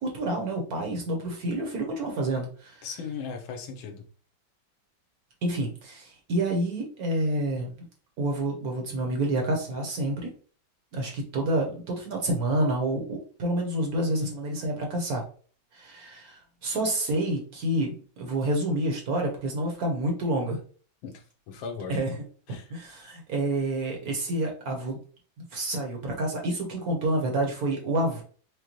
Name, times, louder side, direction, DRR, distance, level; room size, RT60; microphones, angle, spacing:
voice 1, 0.0-2.9 5.4-7.7 8.2-10.3 10.9-15.2 15.7-20.6 21.9-22.2 22.5-25.0 25.4-28.2, right 1 dB, 55° right, 1 dB, 1.2 m, -28 dB
voice 2, 2.8-4.0 21.0-22.0 22.5-22.7, left 5 dB, 85° left, 4 dB, 1.6 m, -37 dB
5.1 x 2.2 x 2.9 m, 0.41 s
omnidirectional pair, 2.1 m